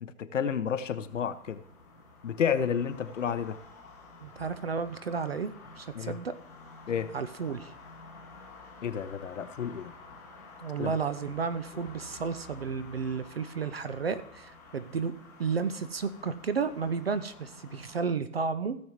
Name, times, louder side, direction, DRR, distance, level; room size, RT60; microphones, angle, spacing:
voice 1, 0.0-1.6 2.2-3.6 6.0-6.1 6.9-7.1 8.8-9.9 10.8-10.9, left 7 dB, 55° left, 0.7 m, -31 dB
sound 1, 1.0-18.1, left 3 dB, 5° left, 1.2 m, -51 dB
voice 2, 4.2-6.3 7.1-7.7 10.6-15.1 15.4-18.8, right 5 dB, 40° right, 0.5 m, -32 dB
16.0 x 7.1 x 3.0 m
figure-of-eight pair, 140°, 46 cm